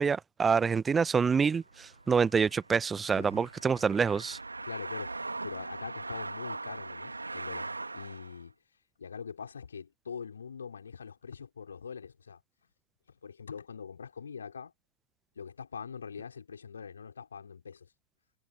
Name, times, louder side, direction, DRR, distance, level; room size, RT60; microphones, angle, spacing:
voice 1, 0.0-4.4, right 5 dB, 15° right, 0.8 m, -27 dB
sound 1, 1.5-8.4, right 3 dB, 80° right, 2.4 m, -41 dB
voice 2, 3.1-3.5 4.7-8.5 9.0-12.4 13.1-14.7 15.3-17.9, left 6 dB, 70° left, 5.0 m, -43 dB
figure-of-eight pair, 90°, 0 cm